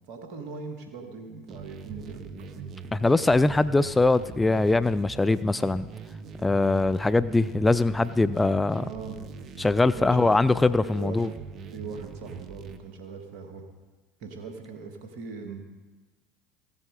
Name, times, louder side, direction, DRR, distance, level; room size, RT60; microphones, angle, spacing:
voice 1, 0.0-2.7 8.8-9.2 9.9-10.4 10.8-11.3 11.7-13.6 14.2-15.6, right 4 dB, 65° right, 4 dB, 1.8 m, -40 dB
sound 1, 1.5-12.8, right 5 dB, 45° right, 0.9 m, -42 dB
voice 2, 2.9-5.9 6.4-8.8 9.6-11.3, left 2 dB, 15° left, 15 dB, 0.4 m, -22 dB
15.5 x 7.6 x 4.9 m, 1.2 s
hypercardioid pair, 75°, 0 cm